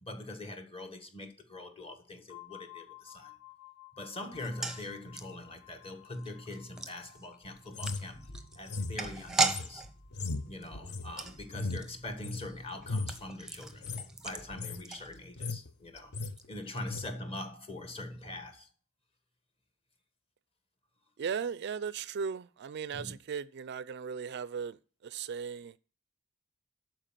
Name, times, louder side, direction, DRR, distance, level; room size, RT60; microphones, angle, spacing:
voice 1, 0.0-3.3 4.0-8.3 8.5-9.8 10.4-13.9 14.2-16.1 16.5-18.7 22.9-23.1, left 1 dB, 30° left, 1.6 m, -43 dB
sound 1, 2.3-11.9, left 20 dB, 85° left, 0.9 m, -56 dB
sound 2, 4.3-15.6 15.8-15.9 16.2-16.4, right 3 dB, 5° right, 0.8 m, -38 dB
sound 3, 7.7-12.5 12.8-13.2 13.7-14.1 14.4-14.8 15.2-15.7 16.0-16.4 16.9-17.1, left 3 dB, 55° left, 0.7 m, -37 dB
voice 2, 21.2-25.8, right 6 dB, 55° right, 0.4 m, -37 dB
11.5 x 4.5 x 7.4 m
head